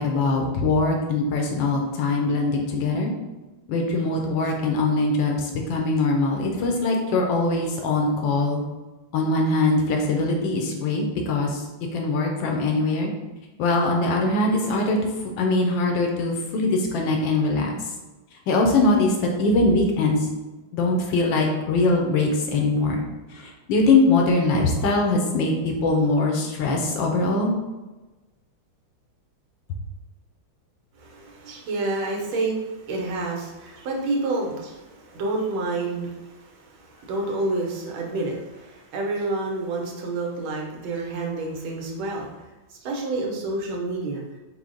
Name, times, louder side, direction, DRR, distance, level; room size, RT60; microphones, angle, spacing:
voice 1, 0.0-3.1 3.7-8.6 9.1-11.6 11.9-13.1 13.6-15.0 15.4-17.7 18.5-20.3 20.7-23.0 23.3-27.5, left 2 dB, 75° left, 1 dB, 1.3 m, -22 dB
voice 2, 31.0-42.3 42.8-44.2, right 2 dB, 80° right, -1 dB, 1.6 m, -29 dB
4.5 x 2.0 x 3.7 m, 1.1 s
omnidirectional pair, 2.2 m